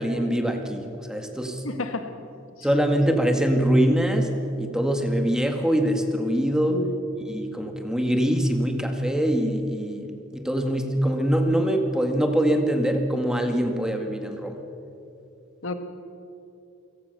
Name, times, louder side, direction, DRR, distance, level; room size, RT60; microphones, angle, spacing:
voice 1, 0.0-1.6 2.6-4.3 4.6-6.8 7.3-14.6, equal, 5° right, 4 dB, 2.0 m, -23 dB
voice 2, 1.6-2.1 2.6-2.7 6.7-6.9 15.6-15.7, left 2 dB, 90° left, 8 dB, 1.8 m, -30 dB
29.5 x 17.0 x 6.8 m, 2.7 s
head